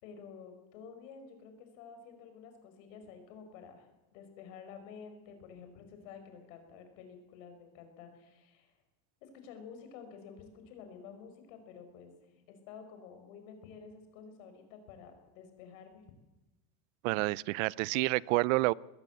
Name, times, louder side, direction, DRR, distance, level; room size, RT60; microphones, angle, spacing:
voice 1, 0.0-8.7 9.2-12.1 12.5-16.0, left 6 dB, 90° left, 7 dB, 5.1 m, -51 dB
voice 2, 17.0-18.7, right 22 dB, 85° right, 23 dB, 0.6 m, -29 dB
20.5 x 18.5 x 8.1 m, 1.1 s
cardioid pair, 170°, 37 cm